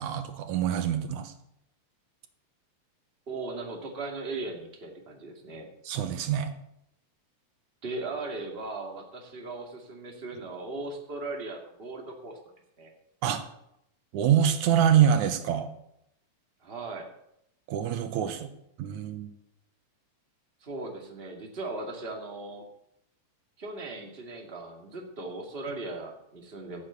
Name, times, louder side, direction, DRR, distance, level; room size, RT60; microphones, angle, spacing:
voice 1, 0.0-1.3 5.9-6.5 13.2-13.5 14.1-15.7 17.7-18.5 18.8-19.3, right 9 dB, 85° right, 9 dB, 2.4 m, -25 dB
voice 2, 3.3-5.7 7.8-12.4 12.8-12.9 16.6-17.1 20.6-22.7 23.6-26.8, right 3 dB, 20° right, 1 dB, 2.1 m, -38 dB
15.5 x 6.9 x 8.0 m, 0.78 s
omnidirectional pair, 3.4 m